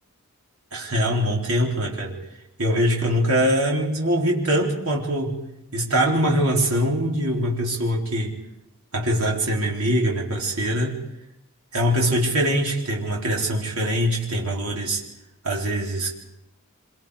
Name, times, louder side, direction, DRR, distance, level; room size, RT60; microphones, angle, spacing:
voice 1, 0.7-2.2 2.6-5.5 5.7-8.4 8.9-11.0 11.7-15.0 15.4-16.2, equal, 70° right, -2 dB, 3.9 m, -23 dB
26.0 x 24.0 x 4.9 m, 0.87 s
head